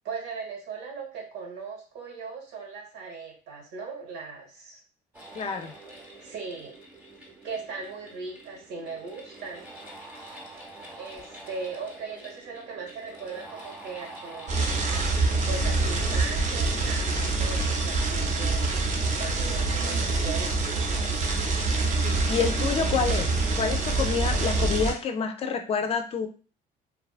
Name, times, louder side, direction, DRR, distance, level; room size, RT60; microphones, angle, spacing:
voice 1, 0.0-4.8 6.2-6.8 7.4-9.6 11.0-14.8 15.4-18.8 19.2-20.7, right 4 dB, 85° right, 0 dB, 1.1 m, -38 dB
sound 1, 5.1-16.2, right 1 dB, 10° right, 0.8 m, -46 dB
voice 2, 5.4-5.7 22.0-26.3, left 6 dB, 35° left, 6 dB, 0.4 m, -28 dB
sound 2, 14.5-24.9, right 3 dB, 45° right, 0.6 m, -26 dB
2.7 x 2.2 x 2.4 m, 0.38 s
cardioid pair, 110°, 17 cm